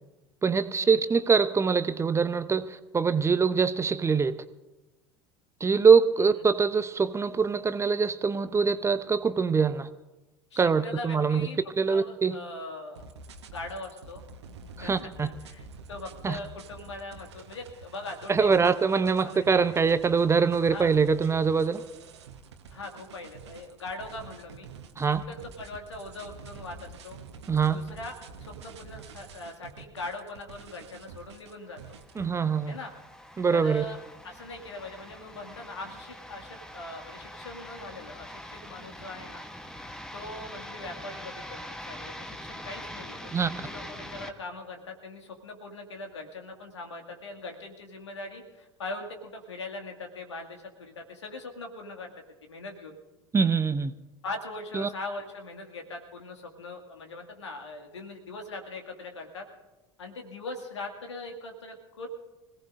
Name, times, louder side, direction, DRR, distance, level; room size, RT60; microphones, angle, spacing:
voice 1, 0.4-4.4 5.6-9.9 10.6-11.5 11.8-12.4 14.8-15.3 16.2-16.4 18.3-21.9 25.0-25.2 27.5-27.8 32.2-32.8 33.4-33.8 43.3-43.5 53.3-53.9 54.7-54.9, right 5 dB, 20° right, 13 dB, 0.7 m, -24 dB
voice 2, 10.5-11.6 11.9-13.1 13.5-14.2 14.8-18.7 19.2-19.6 20.7-20.9 22.7-24.7 25.0-27.2 27.7-28.1 28.4-32.0 32.7-32.9 33.5-34.0 34.2-39.4 40.1-53.0 54.2-59.4 60.0-62.1, left 2 dB, 75° left, 3 dB, 2.2 m, -41 dB
sound 1, 13.0-32.3, right 5 dB, 70° right, 1.2 m, -47 dB
sound 2, 31.8-44.3, left 1 dB, 5° left, 1.2 m, -43 dB
25.5 x 17.5 x 2.6 m, 1.1 s
figure-of-eight pair, 70°, 15 cm